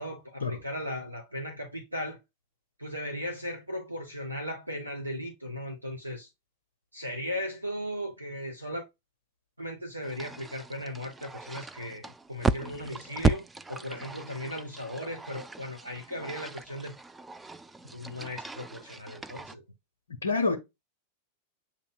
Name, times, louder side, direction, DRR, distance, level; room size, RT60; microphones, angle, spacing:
voice 1, 0.0-2.2 2.8-6.3 6.9-8.8 9.6-17.0 17.9-19.6, left 1 dB, 85° right, 0.8 m, -37 dB
sound 1, 10.0-19.6, right 3 dB, 10° right, 0.3 m, -35 dB
voice 2, 20.1-20.6, left 4 dB, 75° left, 0.6 m, -27 dB
7.3 x 2.7 x 2.2 m
figure-of-eight pair, 90°, 0 cm